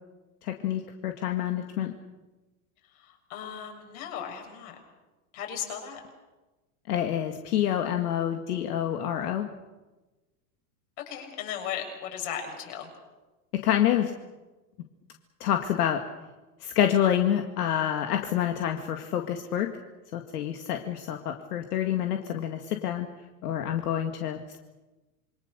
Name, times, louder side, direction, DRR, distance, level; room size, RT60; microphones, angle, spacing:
voice 1, 0.4-1.9 6.9-9.5 13.6-14.1 15.4-16.0 16.6-19.7 20.1-23.1 23.4-24.6, left 10 dB, 80° left, 4 dB, 2.1 m, -27 dB
voice 2, 2.9-4.8 5.3-6.0 11.1-12.9, left 8 dB, 50° left, 3 dB, 7.0 m, -36 dB
27.0 x 23.5 x 6.8 m, 1.1 s
supercardioid pair, 140°, 45 cm